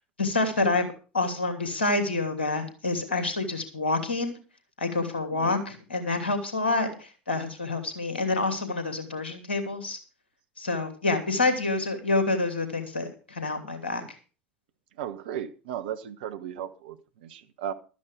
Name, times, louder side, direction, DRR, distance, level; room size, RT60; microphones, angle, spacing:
voice 1, 0.2-4.4 4.8-10.0 10.6-14.0, left 3 dB, 75° left, 2.8 m, -27 dB
voice 2, 15.0-17.7, right 10 dB, 60° right, 1.1 m, -36 dB
13.0 x 9.4 x 5.3 m
figure-of-eight pair, 75°, 6 cm